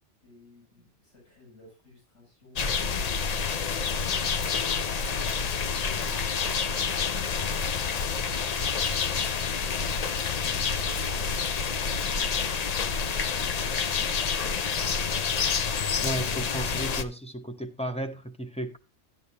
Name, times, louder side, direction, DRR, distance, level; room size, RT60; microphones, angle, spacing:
voice 1, 0.2-3.1, left 2 dB, 65° left, 7.6 m, -54 dB
sound 1, 2.6-17.0, left 6 dB, 50° left, 0.5 m, -28 dB
voice 2, 16.0-18.8, right 1 dB, 5° left, 0.6 m, -34 dB
11.0 x 11.0 x 2.8 m
omnidirectional pair, 1.2 m